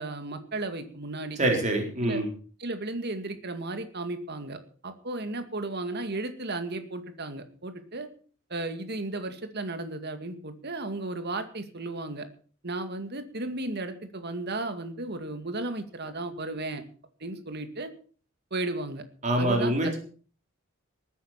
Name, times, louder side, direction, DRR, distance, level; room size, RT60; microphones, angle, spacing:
voice 1, 0.0-1.4 2.0-2.2 2.6-8.1 8.5-12.3 12.6-16.8 17.2-17.9 18.5-19.0 19.3-20.0, right 2 dB, 50° right, 8 dB, 2.2 m, -34 dB
voice 2, 1.4-2.3 19.2-20.0, right 1 dB, 35° right, 2 dB, 3.9 m, -25 dB
20.0 x 9.4 x 5.9 m, 0.41 s
head